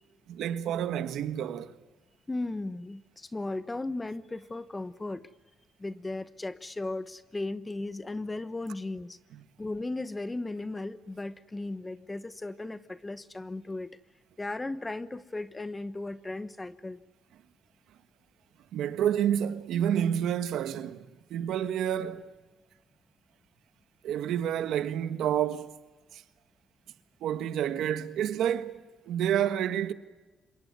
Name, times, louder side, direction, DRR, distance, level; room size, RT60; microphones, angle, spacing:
voice 1, 0.3-1.7 9.3-9.4 18.7-22.3 24.0-25.7 26.1-26.2 27.2-29.9, right 10 dB, 80° right, 1.6 m, -29 dB
voice 2, 2.3-5.3 5.8-9.2 9.6-13.9 14.4-17.0, left 2 dB, 20° left, 1.1 m, -36 dB
27.0 x 23.0 x 9.6 m
cardioid pair, 90°, 0 cm